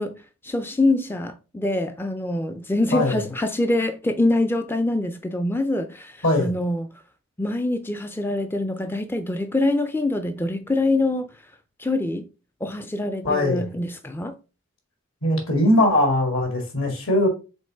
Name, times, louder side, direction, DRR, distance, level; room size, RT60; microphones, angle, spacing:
voice 1, 0.0-6.9 7.4-11.3 11.8-12.3 12.6-14.4, left 2 dB, 10° left, 0.4 m, -25 dB
voice 2, 2.9-3.2 6.2-6.5 13.2-13.6 15.2-17.3, left 1 dB, 70° left, 2.2 m, -20 dB
5.3 x 3.8 x 4.8 m
head